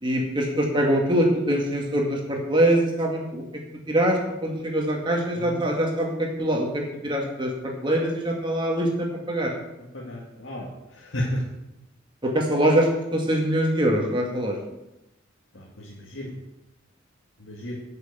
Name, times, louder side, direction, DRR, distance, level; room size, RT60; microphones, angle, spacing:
voice 1, 0.0-3.4 3.9-9.5 12.2-14.6, right 1 dB, 25° right, 0 dB, 1.9 m, -23 dB
voice 2, 9.9-11.4 15.5-16.3 17.4-17.8, left 1 dB, 85° left, -5 dB, 2.0 m, -33 dB
9.6 x 6.3 x 8.1 m, 0.94 s
head